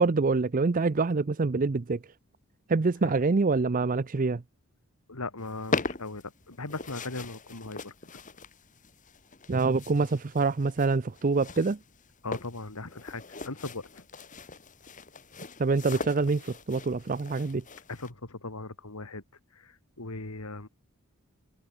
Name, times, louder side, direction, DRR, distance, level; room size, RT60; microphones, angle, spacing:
voice 1, 0.0-2.0 2.7-4.4 9.5-11.8 15.6-17.6, right 4 dB, 40° right, 0.5 m, -25 dB
voice 2, 5.1-7.9 12.2-14.0 17.9-19.2 19.5-20.7, left 3 dB, 85° left, 2.5 m, -38 dB
sound 1, 5.4-18.1, left 3 dB, 35° left, 2.2 m, -40 dB
head